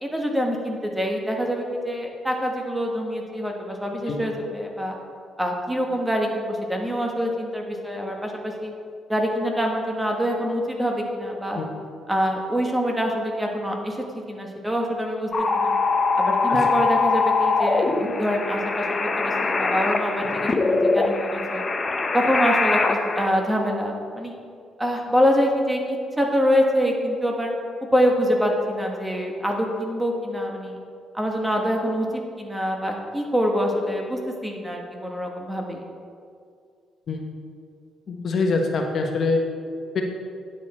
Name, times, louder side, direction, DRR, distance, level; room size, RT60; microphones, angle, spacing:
voice 1, 0.0-4.9 5.4-8.7 9.1-11.6 12.1-15.8 16.2-21.6 22.1-24.3 24.8-27.5 27.9-30.8 31.1-35.8, equal, 10° right, 1 dB, 1.4 m, -25 dB
sound 1, 15.3-23.3, left 3 dB, 30° left, 0.7 m, -22 dB
voice 2, 38.1-39.4 39.9-40.0, left 3 dB, 55° left, 2 dB, 1.0 m, -24 dB
10.0 x 6.5 x 4.3 m, 2.3 s
cardioid pair, 90°, 0 cm